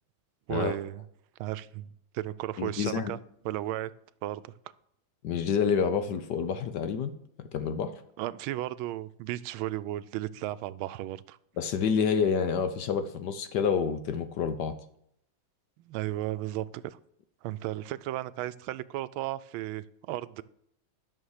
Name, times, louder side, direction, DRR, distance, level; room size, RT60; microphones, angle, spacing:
voice 1, 0.5-1.0 1.4-3.2 3.4-3.9 4.2-4.5 8.2-11.4 15.8-17.0 17.4-20.4, right 14 dB, 90° right, 1.4 m, -34 dB
voice 2, 2.6-3.2 5.2-7.9 11.6-14.7, left 6 dB, 65° left, 1.3 m, -28 dB
11.5 x 6.4 x 6.5 m
omnidirectional pair, 2.2 m